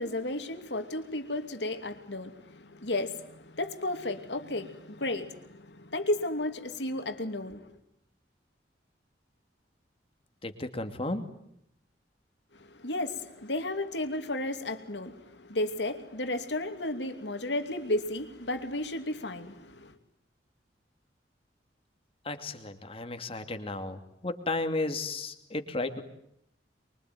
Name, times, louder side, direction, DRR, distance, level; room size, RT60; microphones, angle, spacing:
voice 1, 0.0-7.8 12.5-19.9, left 1 dB, 75° left, 2.8 m, -33 dB
voice 2, 10.4-11.2 22.2-26.0, left 2 dB, 35° left, 2.6 m, -34 dB
25.0 x 23.5 x 9.4 m
head